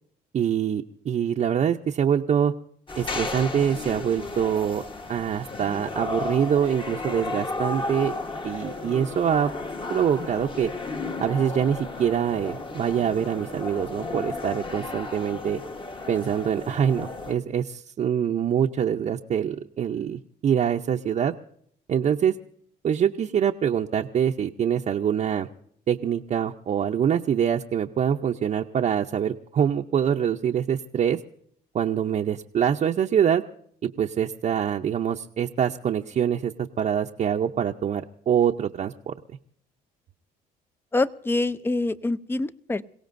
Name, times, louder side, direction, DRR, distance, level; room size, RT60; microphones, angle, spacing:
voice 1, 0.3-2.5 2.9-8.1 8.4-9.5 9.9-10.7 11.2-15.6 16.1-21.3 21.9-22.3 22.8-25.5 25.9-31.2 31.7-33.4 33.8-39.1, right 8 dB, 45° right, 1 dB, 0.7 m, -25 dB
sound 1, 2.9-17.3, left 3 dB, 30° left, 1.4 m, -34 dB
voice 2, 40.9-42.8, left 2 dB, 15° left, 16 dB, 0.5 m, -25 dB
28.0 x 17.5 x 2.6 m, 0.65 s
cardioid pair, 110°, 17 cm